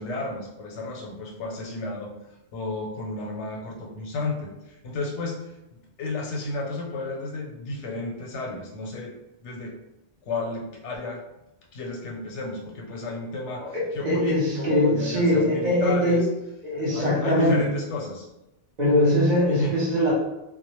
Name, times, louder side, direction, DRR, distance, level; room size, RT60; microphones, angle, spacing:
voice 1, 0.0-2.1 2.5-5.5 6.0-9.1 9.4-9.7 10.2-11.2 11.7-16.3 16.7-18.3 19.5-19.7, left 2 dB, 90° left, 0 dB, 0.9 m, -32 dB
voice 2, 13.7-16.2 16.6-17.6 18.8-20.1, left 1 dB, 45° right, -6 dB, 0.7 m, -22 dB
2.3 x 2.0 x 2.9 m, 0.92 s
omnidirectional pair, 1.1 m